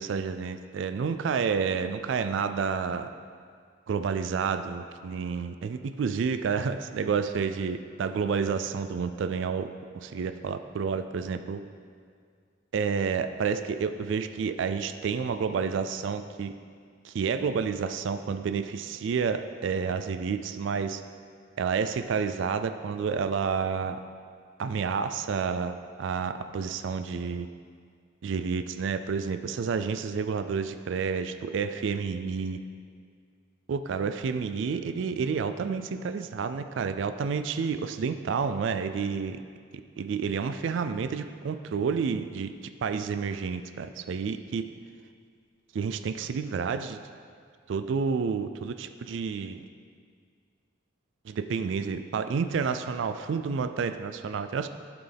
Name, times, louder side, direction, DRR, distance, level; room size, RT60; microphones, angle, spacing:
voice 1, 0.0-3.1 3.9-9.7 10.0-11.6 12.7-16.5 17.0-21.0 21.6-24.0 24.6-27.5 28.2-32.6 33.7-39.4 40.0-42.5 42.8-44.6 45.7-47.0 47.7-49.6 51.2-54.7, right 5 dB, 65° right, 10 dB, 0.3 m, -30 dB
11.0 x 5.9 x 3.4 m, 2.1 s
head